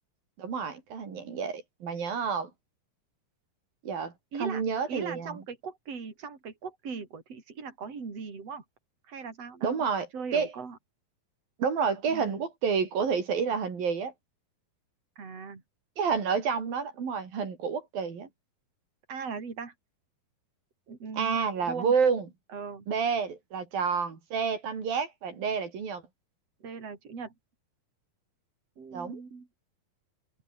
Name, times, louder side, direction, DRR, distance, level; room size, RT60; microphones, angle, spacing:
voice 1, 0.4-2.5 3.8-4.1 4.4-5.4 9.6-10.5 11.6-14.1 16.0-18.3 21.2-22.3 22.9-26.0 28.9-29.2, right 6 dB, 85° right, 6.2 m, -29 dB
voice 2, 4.3-8.6 9.1-9.8 10.1-10.8 12.1-12.4 15.2-15.6 19.1-19.7 20.9-21.9 22.5-22.9 26.6-27.3 28.8-29.5, right 5 dB, 45° right, 5.6 m, -39 dB
omnidirectional pair, 4.0 m